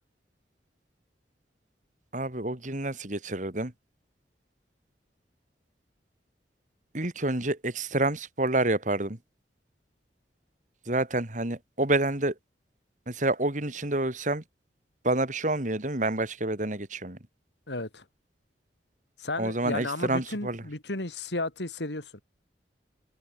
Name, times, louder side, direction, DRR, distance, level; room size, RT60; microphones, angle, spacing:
voice 1, 2.1-3.7 6.9-9.2 10.9-12.3 13.1-14.4 15.0-17.2 19.4-20.6, right 2 dB, 45° right, 2.9 m, -28 dB
voice 2, 17.7-18.0 19.2-22.1, left 2 dB, 80° left, 3.5 m, -33 dB
head